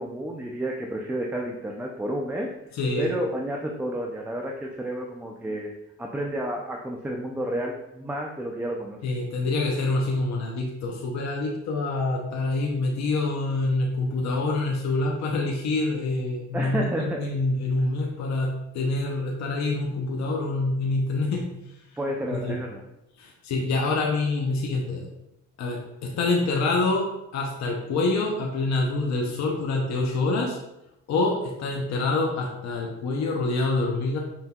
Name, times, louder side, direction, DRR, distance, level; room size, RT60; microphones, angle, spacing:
voice 1, 0.0-2.5 3.0-5.7 6.0-9.0 16.5-17.2 22.0-22.8, right 1 dB, 5° right, 0 dB, 0.4 m, -30 dB
voice 2, 2.7-3.1 9.0-21.5 22.4-22.5 23.2-25.1 25.6-30.6 31.1-34.2, left 2 dB, 65° left, -1 dB, 0.7 m, -26 dB
5.8 x 2.6 x 2.3 m, 0.87 s
cardioid pair, 90°, 30 cm